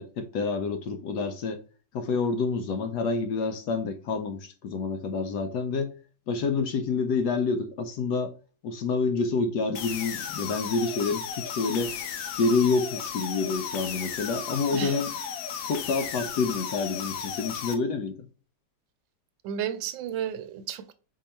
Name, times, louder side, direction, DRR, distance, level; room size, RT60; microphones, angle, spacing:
voice 1, 0.0-1.6 1.9-5.9 6.3-8.3 8.6-11.9 12.4-15.1 15.6-18.2, left 4 dB, 70° left, 1.0 m, -28 dB
sound 1, 9.7-17.7, left 7 dB, 85° left, 1.4 m, -35 dB
voice 2, 19.4-20.9, right 9 dB, 80° right, 1.3 m, -32 dB
4.6 x 2.8 x 4.2 m
omnidirectional pair, 2.1 m